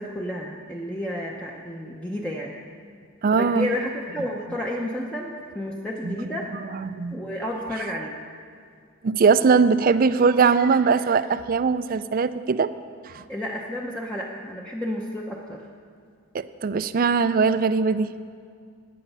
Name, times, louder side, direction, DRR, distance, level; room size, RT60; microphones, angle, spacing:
voice 1, 0.0-2.5 3.3-6.5 7.1-8.2 13.3-15.7, left 1 dB, 5° left, -2 dB, 0.6 m, -31 dB
voice 2, 3.2-3.7 6.0-6.3 6.7-7.2 9.0-12.7 13.0-13.2 16.3-18.1, right 5 dB, 40° right, 14 dB, 0.3 m, -21 dB
15.0 x 9.4 x 5.4 m, 2.2 s
head